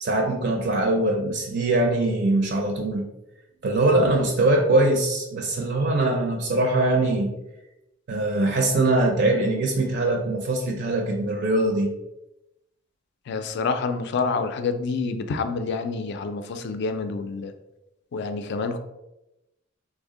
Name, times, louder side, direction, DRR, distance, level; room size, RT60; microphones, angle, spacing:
voice 1, 0.0-3.1 3.6-7.3 8.1-11.9, right 2 dB, 60° right, 3 dB, 0.5 m, -22 dB
voice 2, 13.3-17.5 18.1-18.8, left 4 dB, 60° left, 8 dB, 0.3 m, -27 dB
3.4 x 2.0 x 3.6 m, 0.91 s
head